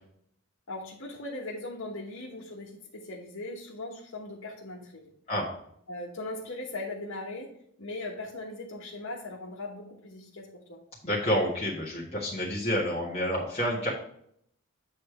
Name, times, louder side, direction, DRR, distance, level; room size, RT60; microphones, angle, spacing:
voice 1, 0.7-5.1 5.9-10.8, left 2 dB, 85° left, -3 dB, 1.2 m, -39 dB
voice 2, 11.0-13.9, equal, 30° left, -7 dB, 1.6 m, -29 dB
8.5 x 3.3 x 5.9 m, 0.70 s
head